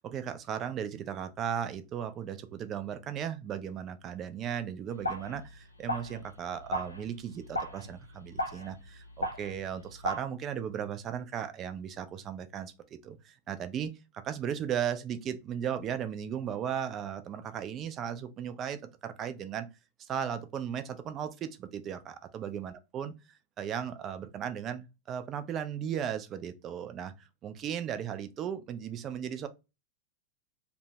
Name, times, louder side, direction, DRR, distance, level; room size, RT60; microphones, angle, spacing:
voice 1, 0.0-19.7 20.0-23.1 23.6-29.5, right 8 dB, 30° right, 0.3 m, -36 dB
sound 1, 5.0-10.2, equal, 85° left, 0.4 m, -37 dB
2.6 x 2.2 x 2.8 m
figure-of-eight pair, 90°, 0 cm